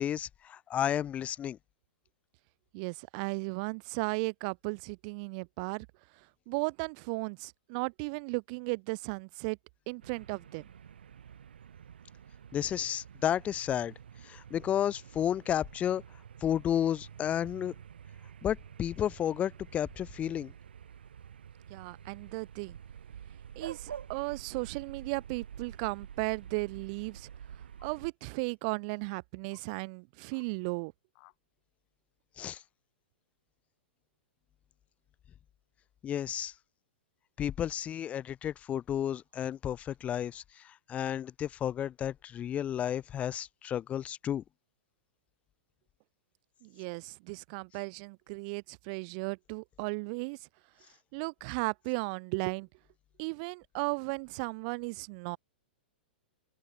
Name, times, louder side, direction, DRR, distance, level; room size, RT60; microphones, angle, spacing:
voice 1, 0.0-1.6 12.5-13.9 14.2-16.0 16.4-17.7 18.4-20.5 32.4-32.6 36.0-36.5 37.4-44.4, left 10 dB, 25° left, 0.6 m, -32 dB
voice 2, 2.7-5.9 6.5-9.6 9.9-10.6 21.7-22.8 23.6-27.3 27.8-30.9 46.6-50.4 51.1-52.7 53.2-55.4, right 32 dB, 45° right, 2.5 m, -35 dB
sound 1, 10.0-28.1, right 8 dB, 75° right, 1.8 m, -49 dB
sound 2, 27.8-27.9 28.8-28.9 29.5-29.7 30.3-30.5 31.1-31.4, left 40 dB or more, 45° left, 8.0 m, -63 dB
hypercardioid pair, 105°, 6 cm